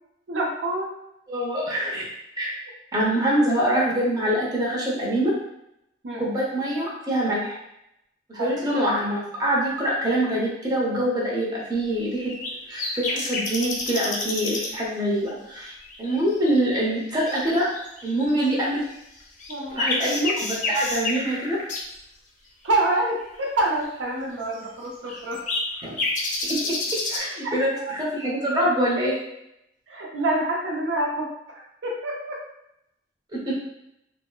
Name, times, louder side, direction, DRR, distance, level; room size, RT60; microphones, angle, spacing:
voice 1, 0.3-1.0 6.0-6.3 8.3-8.7 19.5-20.1 22.6-25.4 27.4-27.9 29.9-32.4, right 2 dB, 85° right, -1 dB, 0.5 m, -27 dB
voice 2, 1.3-2.1 2.4-2.5 2.9-5.3 6.2-7.6 8.3-12.3 12.7-15.7 16.0-17.7 18.0-18.8 19.7-21.6 25.8-26.0 26.5-29.2 33.3-33.6, right 1 dB, 20° right, -4 dB, 0.7 m, -24 dB
sound 1, 12.2-12.5 12.8-14.7 15.3-15.4 15.8-18.8 19.2-21.8 23.8-23.9 24.5-24.6 25.1-27.2, left 2 dB, 45° left, 0.5 m, -29 dB
3.6 x 2.0 x 2.2 m, 0.82 s
head